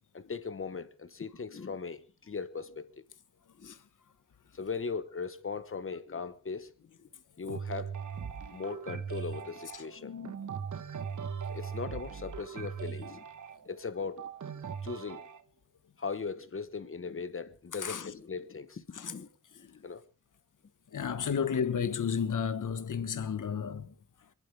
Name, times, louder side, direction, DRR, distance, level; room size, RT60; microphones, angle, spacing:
voice 1, 0.1-2.9 3.6-3.8 4.5-6.7 7.0-7.1 7.4-7.9 8.5-10.1 11.5-13.2 13.6-14.3 14.8-15.2 16.0-19.3 19.5-20.0, left 5 dB, 45° left, 1.1 m, -39 dB
sound 1, 7.5-15.4, right 7 dB, 75° right, 1.2 m, -40 dB
voice 2, 10.0-10.3 17.8-18.1 18.9-19.1 20.9-23.9, left 7 dB, 85° left, 1.4 m, -32 dB
27.0 x 11.5 x 3.4 m
wide cardioid pair, 155°, 30 cm